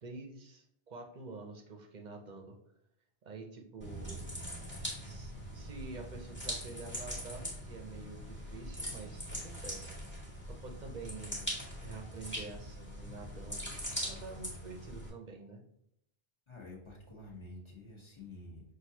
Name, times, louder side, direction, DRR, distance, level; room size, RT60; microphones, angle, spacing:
voice 1, 0.0-2.6 3.2-4.3 5.0-9.9 10.5-11.5 11.8-15.7, right 3 dB, 50° right, 3 dB, 0.7 m, -48 dB
sound 1, 3.8-15.1, equal, 10° left, 1.4 m, -42 dB
voice 2, 16.5-18.6, left 2 dB, 25° left, -3 dB, 1.2 m, -49 dB
6.0 x 2.6 x 2.7 m, 0.75 s
omnidirectional pair, 1.1 m